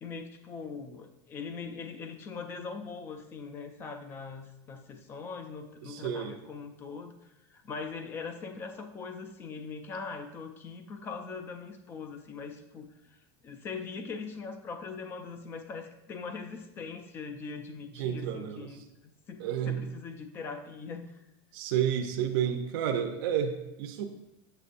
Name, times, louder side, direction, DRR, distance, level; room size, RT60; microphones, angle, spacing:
voice 1, 0.0-13.2 13.4-21.2, left 5 dB, 15° left, 7 dB, 0.3 m, -41 dB
voice 2, 5.8-6.3 17.9-18.8 19.4-19.8 21.5-24.1, right 9 dB, 55° right, 3 dB, 0.6 m, -31 dB
7.4 x 6.6 x 2.6 m, 0.91 s
supercardioid pair, 180°, 14 cm